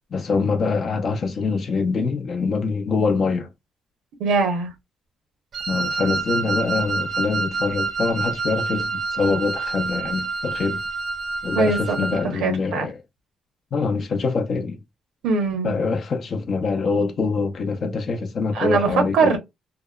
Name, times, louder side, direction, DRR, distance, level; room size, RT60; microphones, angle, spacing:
voice 1, 0.1-3.5 5.7-10.8 11.4-13.0 13.7-14.8 15.6-19.4, left 4 dB, 55° left, 0.6 m, -24 dB
voice 2, 4.2-4.7 11.5-12.0 12.3-12.9 15.2-15.8 18.5-19.4, right 4 dB, 85° right, 0.8 m, -21 dB
Wind instrument woodwind instrument, 5.5-12.3, right 4 dB, 60° right, 0.5 m, -27 dB
2.8 x 2.1 x 2.2 m
cardioid pair, 90°, 0 cm